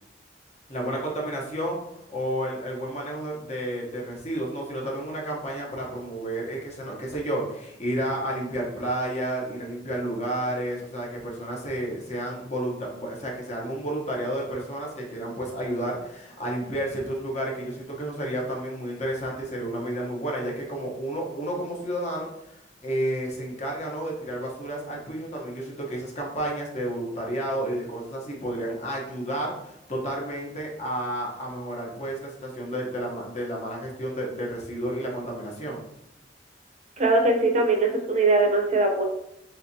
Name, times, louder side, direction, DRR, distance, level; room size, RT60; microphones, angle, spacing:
voice 1, 0.7-35.8, right 1 dB, 40° left, -1 dB, 1.1 m, -31 dB
voice 2, 37.0-39.0, right 2 dB, 40° right, 3 dB, 0.7 m, -21 dB
4.5 x 3.4 x 2.8 m, 0.80 s
head